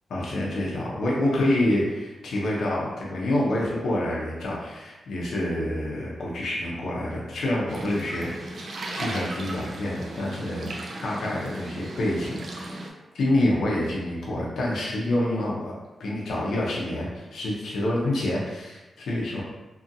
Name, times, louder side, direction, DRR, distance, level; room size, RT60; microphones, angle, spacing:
voice 1, 0.1-10.7 11.0-12.8 13.1-15.7 16.0-19.4, left 1 dB, 75° left, -5 dB, 0.6 m, -27 dB
sound 1, 7.7-12.9, right 2 dB, 55° right, 0.4 m, -36 dB
2.7 x 2.6 x 2.6 m, 1.1 s
cardioid pair, 105°, 0 cm